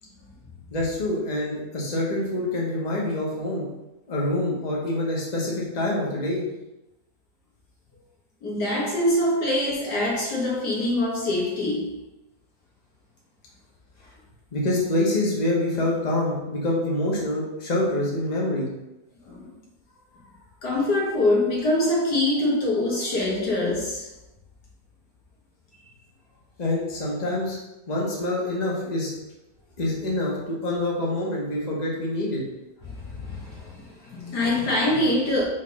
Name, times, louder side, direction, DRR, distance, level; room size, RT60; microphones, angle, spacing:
voice 1, 0.7-3.7 4.1-6.4 14.5-18.7 26.6-27.6 27.9-29.1 29.8-32.4, left 1 dB, 30° left, 1.4 m, -26 dB
voice 2, 8.4-12.0 19.2-19.5 20.6-24.1 32.9-35.4, left 1 dB, 80° left, 2.1 m, -24 dB
5.4 x 3.4 x 5.4 m
omnidirectional pair, 1.7 m